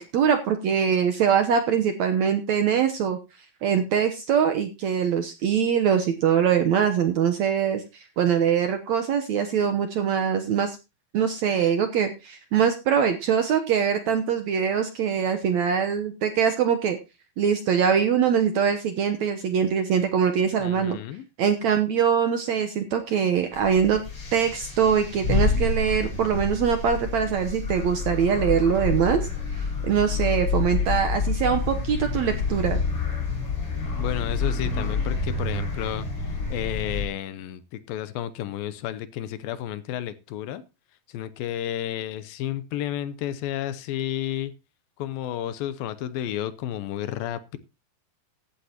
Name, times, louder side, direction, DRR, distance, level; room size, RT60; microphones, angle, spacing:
voice 1, 0.0-3.2 3.6-10.8 11.1-17.0 17.4-21.0 21.4-24.0 24.3-32.8, right 7 dB, 70° right, 1.8 m, -23 dB
voice 2, 20.6-21.3 34.0-40.6 41.1-44.5 45.0-47.6, left 11 dB, 80° left, 2.5 m, -32 dB
sound 1, 23.5-37.1, left 4 dB, 35° left, 6.0 m, -28 dB
16.0 x 11.5 x 2.9 m
omnidirectional pair, 4.3 m